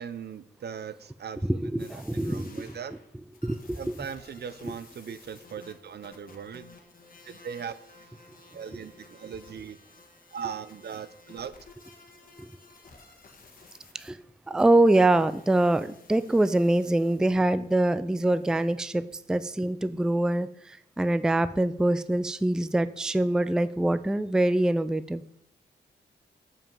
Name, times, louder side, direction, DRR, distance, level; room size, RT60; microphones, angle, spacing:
voice 1, 0.0-2.9 3.8-6.8 7.2-9.8 10.3-11.5, right 7 dB, 65° right, 13 dB, 0.6 m, -40 dB
voice 2, 1.5-2.7 3.4-3.8 12.4-12.5 13.9-14.2 14.5-25.2, right 1 dB, 5° right, 14 dB, 0.3 m, -24 dB
sound 1, 1.8-14.1 14.6-18.8, left 3 dB, 50° left, 1.5 m, -54 dB
7.3 x 5.5 x 5.4 m, 0.66 s
cardioid pair, 80°, 18 cm